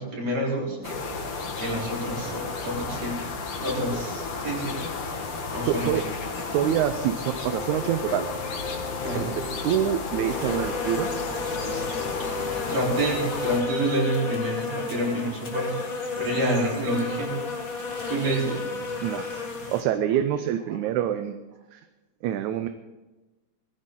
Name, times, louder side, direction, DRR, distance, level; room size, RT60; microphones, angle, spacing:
voice 1, 0.0-3.3 3.6-4.8 5.5-6.0 9.0-9.4 12.7-15.7 16.2-17.3 18.1-18.8, right 1 dB, 60° right, -3 dB, 5.1 m, -28 dB
sound 1, 0.8-13.6, left 4 dB, 50° left, 2.4 m, -33 dB
voice 2, 5.7-6.0 6.5-8.3 9.1-11.1 19.0-21.4 21.7-21.8 22.2-22.7, right 10 dB, 80° right, 9 dB, 2.1 m, -26 dB
sound 2, 7.5-13.4, left 4 dB, 80° left, 2.4 m, -37 dB
sound 3, 10.2-19.8, left 4 dB, 35° left, 1.8 m, -32 dB
19.5 x 15.5 x 3.8 m, 1.1 s
omnidirectional pair, 3.4 m